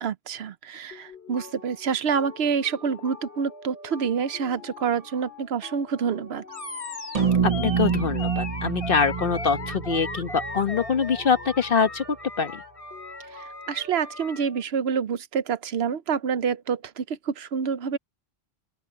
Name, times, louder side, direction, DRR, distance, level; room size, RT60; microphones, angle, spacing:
voice 1, 0.0-6.4 13.3-18.0, right 6 dB, 80° right, 1.0 m, -27 dB
sound 1, 0.9-14.6, left 3 dB, 90° left, 3.7 m, -46 dB
Animal, 6.5-14.5, left 2 dB, 30° left, 2.2 m, -38 dB
sound 2, 7.1-11.6, right 6 dB, 40° right, 0.8 m, -27 dB
voice 2, 7.4-12.0 12.4-12.6, left 6 dB, 60° left, 1.4 m, -24 dB
open air
omnidirectional pair, 1.1 m